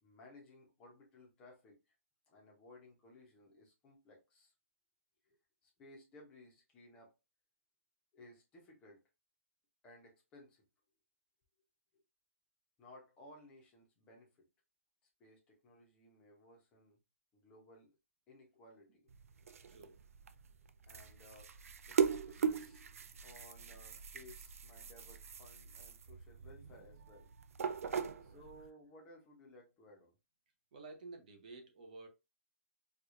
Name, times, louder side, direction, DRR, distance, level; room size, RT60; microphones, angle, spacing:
voice 1, 0.0-1.8 2.3-4.5 5.2-5.3 5.6-7.1 8.1-9.0 9.8-10.6 12.8-14.5 15.2-17.0 17.3-18.0 18.3-19.1 20.9-22.8 23.2-27.3 28.2-30.1, left 1 dB, 10° left, 0.7 m, -59 dB
sound 1, 19.1-28.7, right 7 dB, 75° right, 0.4 m, -40 dB
voice 2, 19.7-20.0 28.1-28.5 30.7-32.1, right 3 dB, 35° right, 0.7 m, -52 dB
4.6 x 2.3 x 2.5 m
hypercardioid pair, 180°, 8 cm